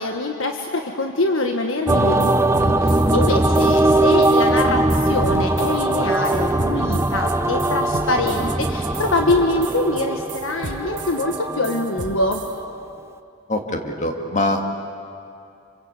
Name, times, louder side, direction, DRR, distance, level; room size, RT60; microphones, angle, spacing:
voice 1, 0.0-12.4, left 2 dB, 85° left, 4 dB, 1.5 m, -24 dB
sound 1, 1.9-12.3, right 2 dB, 15° right, 0.7 m, -20 dB
sound 2, 1.9-12.5, right 4 dB, 60° right, 1.4 m, -34 dB
voice 2, 13.5-14.8, left 1 dB, 35° left, 3 dB, 2.4 m, -23 dB
27.0 x 26.0 x 8.3 m, 2.5 s
head